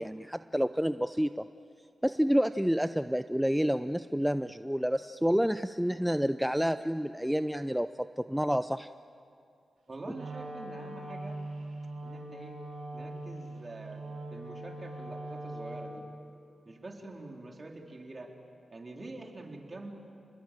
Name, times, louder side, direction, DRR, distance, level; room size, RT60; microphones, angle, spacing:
voice 1, 0.0-1.4 2.0-7.9 8.2-8.9, equal, 5° right, 11 dB, 0.6 m, -29 dB
voice 2, 9.9-11.4 12.0-12.6 12.9-14.0 14.3-16.1 16.7-18.4 18.7-19.9, right 2 dB, 40° right, 1 dB, 3.9 m, -45 dB
Wind instrument woodwind instrument, 10.1-16.1, right 2 dB, 85° right, 5.8 m, -41 dB
29.0 x 20.5 x 9.1 m, 2.4 s
cardioid pair, 60°, 0 cm